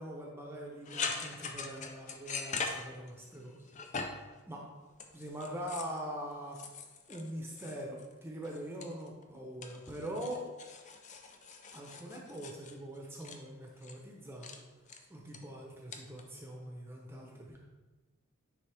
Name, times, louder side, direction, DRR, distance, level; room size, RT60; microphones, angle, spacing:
voice 1, 0.0-3.6 4.1-4.6 5.1-6.6 7.1-10.5 11.7-14.5 15.1-17.6, right 1 dB, 10° right, -1 dB, 0.8 m, -43 dB
sound 1, 0.8-3.4 3.7-4.3 4.9-6.0 6.5-8.1 8.4-9.3 9.6-13.4 13.8-14.0 14.4-14.6 14.9-15.4 15.9-16.2, left 5 dB, 35° left, 0.5 m, -41 dB
9.4 x 3.6 x 3.4 m, 1.2 s
head